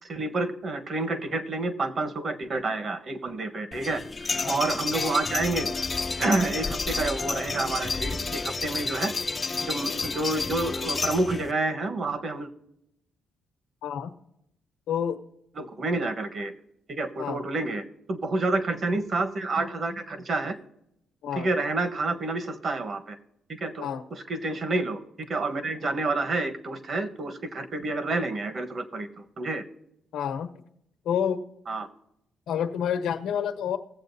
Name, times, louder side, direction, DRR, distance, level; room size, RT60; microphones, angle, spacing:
voice 1, 0.0-4.0 4.5-5.7 6.2-9.1 9.6-12.5 15.5-16.5 16.9-20.6 21.3-23.2 23.6-25.0 25.3-29.6 31.7-31.9, right 2 dB, 45° right, 9 dB, 1.2 m, -29 dB
sound 1, 3.7-11.5, left 4 dB, 30° left, 0.4 m, -30 dB
voice 2, 13.8-14.1 14.9-15.2 17.2-17.4 21.2-21.5 23.8-24.0 30.1-30.5 31.0-31.4 32.5-33.8, left 8 dB, 80° left, 6 dB, 1.0 m, -28 dB
18.5 x 7.7 x 2.7 m, 0.79 s
cardioid pair, 90°, 0 cm